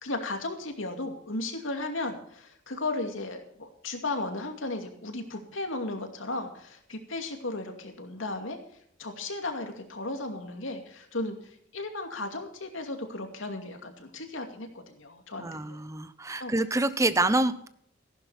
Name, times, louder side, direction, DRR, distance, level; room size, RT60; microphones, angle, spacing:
voice 1, 0.0-8.6 9.0-15.8 16.3-16.6, left 2 dB, 85° left, 4 dB, 2.5 m, -35 dB
voice 2, 15.4-17.7, right 2 dB, 15° right, 13 dB, 0.7 m, -27 dB
15.0 x 11.5 x 4.3 m, 0.67 s
head